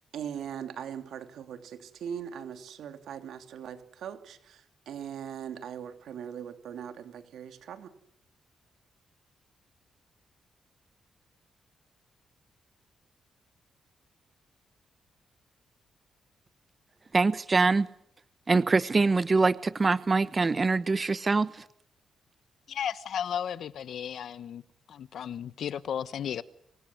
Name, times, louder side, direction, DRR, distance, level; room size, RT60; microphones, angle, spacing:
voice 1, 0.1-4.6 4.9-7.9, right 8 dB, 80° right, 3.0 m, -40 dB
voice 2, 17.1-17.9 18.5-21.5, right 3 dB, 30° right, 1.1 m, -24 dB
voice 3, 22.7-24.6 24.9-26.4, left 9 dB, 70° left, 1.2 m, -34 dB
26.5 x 22.5 x 9.5 m
cardioid pair, 105°, 0 cm